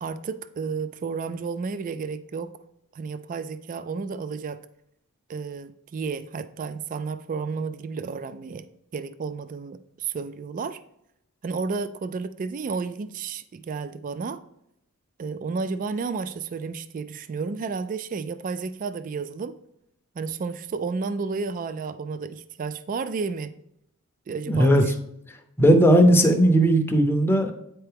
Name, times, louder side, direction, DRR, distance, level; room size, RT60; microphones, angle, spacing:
voice 1, 0.0-2.5 2.9-4.6 5.3-8.7 8.9-10.8 11.4-14.4 15.2-19.5 20.2-23.5 24.3-24.7, right 5 dB, 35° right, 12 dB, 0.3 m, -32 dB
voice 2, 24.5-24.8 25.6-27.5, equal, 10° left, 3 dB, 0.6 m, -17 dB
8.9 x 4.5 x 3.4 m, 0.79 s
head